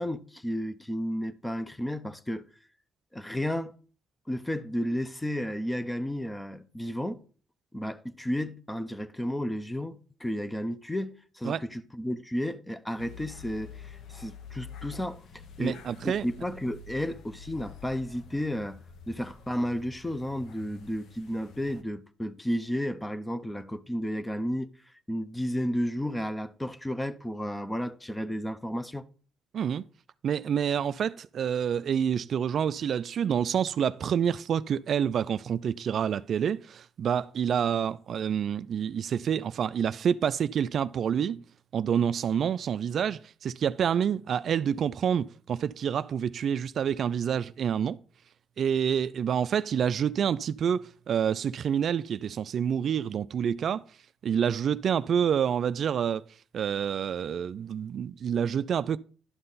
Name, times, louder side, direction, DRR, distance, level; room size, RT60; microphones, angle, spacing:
voice 1, 0.0-2.5 3.1-3.7 4.3-7.2 7.7-15.2 15.6-15.8 16.2-18.8 19.1-24.7 25.1-29.0, equal, 10° left, 0.7 m, -32 dB
sound 1, 13.0-21.8, left 6 dB, 75° left, 0.9 m, -48 dB
voice 2, 15.6-16.3 29.5-29.8 30.2-41.4 41.7-48.0 48.6-53.8 54.2-56.2 56.5-59.0, right 8 dB, 60° right, 0.3 m, -28 dB
11.0 x 5.6 x 4.0 m
cardioid pair, 90°, 0 cm